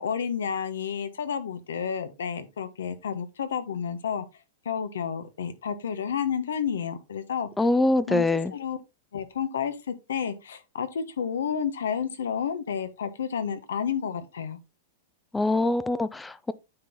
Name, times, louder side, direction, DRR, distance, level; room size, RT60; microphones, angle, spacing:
voice 1, 0.0-4.2 4.6-7.5 8.1-8.2 8.5-8.8 9.1-14.6, left 7 dB, 90° left, 1.2 m, -30 dB
voice 2, 7.6-8.5 15.3-16.5, left 2 dB, 10° left, 0.4 m, -24 dB
9.4 x 4.4 x 3.7 m
hypercardioid pair, 130°, 0 cm